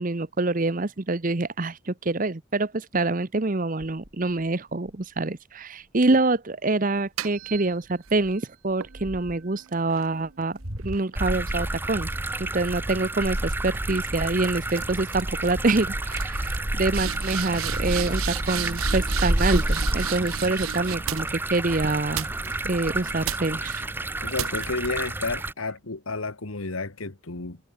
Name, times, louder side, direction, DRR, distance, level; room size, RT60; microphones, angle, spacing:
voice 1, 0.0-10.6 10.8-12.1 12.4-22.3 22.6-23.9, right 2 dB, 40° right, 0.9 m, -26 dB
sound 1, 3.8-5.3 5.8-5.9 6.1-6.4 6.9-7.2 8.1-9.5 10.2-14.1 14.6-17.6 18.1-18.4 18.6-18.7 19.0-19.7 21.4-21.5 21.8-22.2 22.5-23.5, equal, 60° right, 5.7 m, -43 dB
sound 2, 6.9-8.2 8.8-12.4 12.7-13.1 13.9-14.1 14.4-14.8 15.1-15.5 15.8-15.9 16.1-21.6 22.1-22.8 23.2-23.7 24.3-24.9, right 12 dB, 85° right, 0.5 m, -35 dB
sound 3, 11.1-25.5, right 1 dB, 10° right, 0.6 m, -29 dB
voice 2, 24.2-27.6, left 3 dB, 90° left, 1.8 m, -31 dB
head